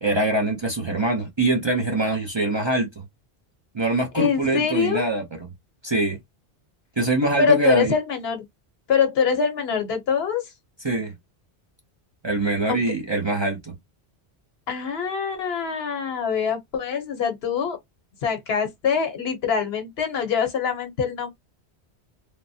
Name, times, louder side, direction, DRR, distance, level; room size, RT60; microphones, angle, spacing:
voice 1, 0.0-2.9 3.7-5.2 5.8-6.2 7.0-7.9 10.8-11.1 12.2-13.7, right 2 dB, 30° right, 0.5 m, -23 dB
voice 2, 4.1-5.1 7.4-8.4 8.9-10.5 12.7-12.8 14.7-17.8 18.2-21.3, left 6 dB, 65° left, 1.0 m, -24 dB
3.2 x 2.1 x 2.6 m
omnidirectional pair, 1.1 m